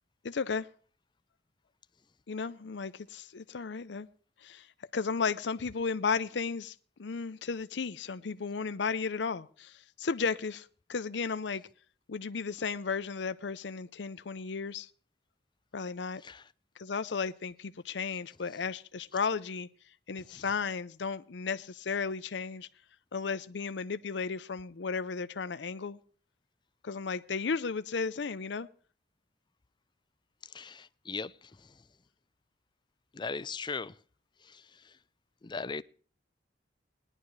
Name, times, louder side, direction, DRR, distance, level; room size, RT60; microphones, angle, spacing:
voice 1, 0.2-0.7 2.3-4.1 4.4-4.7 4.9-11.6 12.1-14.9 15.7-16.2 16.8-19.7 20.1-22.7 23.1-26.0 26.8-28.7, left 5 dB, 70° left, 0.6 m, -34 dB
voice 2, 30.5-31.3 33.1-33.9 34.5-34.6 35.4-35.8, left 4 dB, 25° left, 0.4 m, -38 dB
19.0 x 11.0 x 3.2 m
head